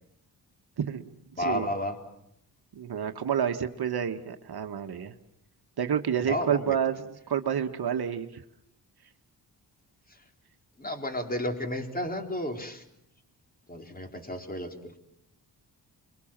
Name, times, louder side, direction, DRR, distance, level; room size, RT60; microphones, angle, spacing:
voice 1, 0.8-1.1 1.4-1.7 2.7-5.1 5.8-7.0 7.3-8.4, right 8 dB, 60° right, 6 dB, 1.5 m, -29 dB
voice 2, 1.3-2.0 6.2-6.8 10.1-10.2 10.8-12.8 13.7-14.7, left 1 dB, 20° left, 5 dB, 4.0 m, -32 dB
28.0 x 23.0 x 7.4 m, 0.79 s
cardioid pair, 95°, 42 cm